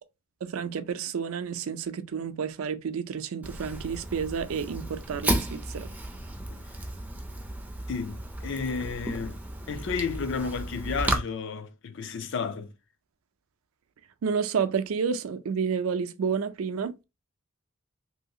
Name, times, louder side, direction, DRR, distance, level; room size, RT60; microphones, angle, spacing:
voice 1, 0.4-5.9 14.2-17.0, right 6 dB, 85° right, 0.4 m, -30 dB
Fire, 3.4-11.2, right 1 dB, 10° right, 0.4 m, -33 dB
voice 2, 7.9-9.4 9.7-12.7, left 5 dB, 60° left, 0.4 m, -32 dB
3.1 x 2.7 x 2.7 m
head